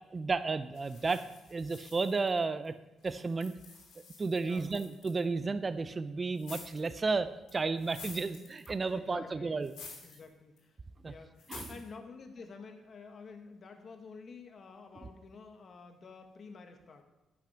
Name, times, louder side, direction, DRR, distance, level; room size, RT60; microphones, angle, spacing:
voice 1, 0.1-1.2 1.5-2.7 3.0-3.5 4.2-9.7 11.0-11.1 11.5-11.7, right 4 dB, 30° right, 12 dB, 0.5 m, -32 dB
sound 1, 0.7-2.7 3.0-5.2 6.3-7.0 7.5-8.9 9.6-10.2 10.6-10.7 11.4-11.9, left 4 dB, 75° left, 3.1 m, -50 dB
voice 2, 4.4-4.7 8.9-9.6 10.0-10.8 11.0-17.0, left 4 dB, 50° left, 5 dB, 1.4 m, -50 dB
9.9 x 7.1 x 5.7 m, 1.0 s
cardioid pair, 90°, 0 cm